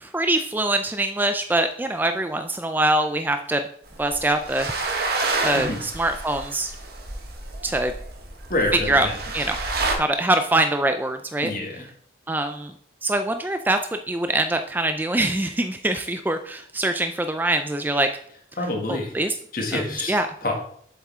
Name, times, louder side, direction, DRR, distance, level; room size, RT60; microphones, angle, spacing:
voice 1, 0.0-3.7 4.0-4.7 5.4-6.7 7.6-7.9 8.9-9.1 9.3-9.6 9.9-11.5 12.3-12.7 13.0-13.8 14.1-18.1 18.9-19.3 19.7-19.8 20.1-20.3, right 2 dB, 10° right, 7 dB, 0.3 m, -23 dB
sound 1, 3.9-10.0, right 3 dB, 55° right, 1.3 m, -29 dB
voice 2, 8.5-9.2 11.4-11.9 18.6-19.1 19.5-20.5, left 2 dB, 50° left, 0 dB, 2.0 m, -27 dB
7.4 x 7.3 x 3.6 m, 0.62 s
head